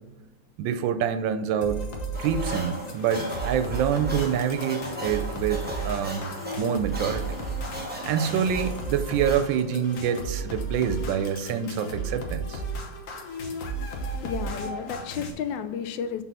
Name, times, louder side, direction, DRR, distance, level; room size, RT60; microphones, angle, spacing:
voice 1, 0.6-1.8 2.2-6.3 6.6-7.4 8.1-12.6, right 8 dB, 85° right, 11 dB, 1.3 m, -26 dB
sound 1, 1.6-15.3, right 2 dB, 50° left, 1.2 m, -34 dB
sound 2, 2.1-11.3, equal, 5° right, 0.9 m, -37 dB
sound 3, 5.7-9.1 9.4-12.2, left 2 dB, 30° left, 2.0 m, -53 dB
voice 2, 14.1-16.2, left 7 dB, 80° left, 11 dB, 1.2 m, -32 dB
6.2 x 4.0 x 4.1 m, 1.1 s
omnidirectional pair, 2.0 m